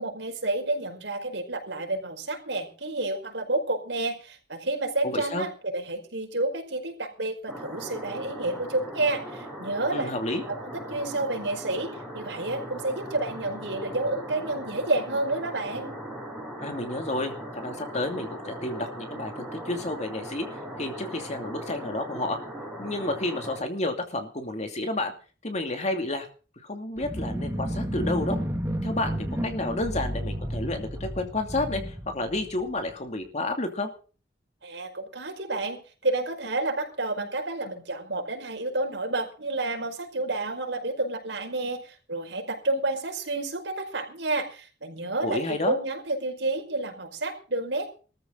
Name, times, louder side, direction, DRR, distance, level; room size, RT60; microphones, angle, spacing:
voice 1, 0.0-10.1 10.5-15.9 34.6-47.9, right 2 dB, 80° right, 3 dB, 5.1 m, -30 dB
voice 2, 5.0-5.5 9.9-10.4 16.6-22.4 22.8-25.1 25.4-26.3 26.6-28.4 28.8-33.9 45.2-45.7, left 2 dB, 40° left, 5 dB, 2.7 m, -30 dB
sound 1, 7.5-23.6, equal, 5° left, 5.8 m, -39 dB
sound 2, 27.0-32.9, equal, 15° right, 2.5 m, -32 dB
20.5 x 14.0 x 4.0 m, 0.37 s
head